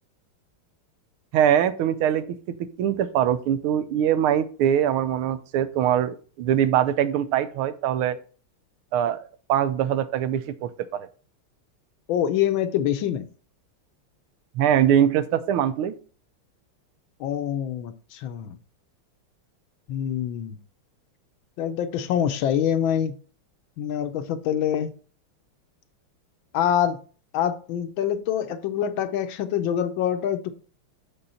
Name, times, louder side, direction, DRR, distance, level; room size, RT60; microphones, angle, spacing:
voice 1, 1.3-2.4 2.8-8.2 8.9-9.2 9.5-11.1 14.5-15.9, right 10 dB, 85° right, 1.5 m, -22 dB
voice 2, 12.1-13.2 17.2-18.6 19.9-20.6 21.6-23.2 23.8-24.9 26.5-27.0 27.3-30.5, left 9 dB, 75° left, 1.3 m, -25 dB
6.9 x 5.4 x 4.2 m
omnidirectional pair, 2.4 m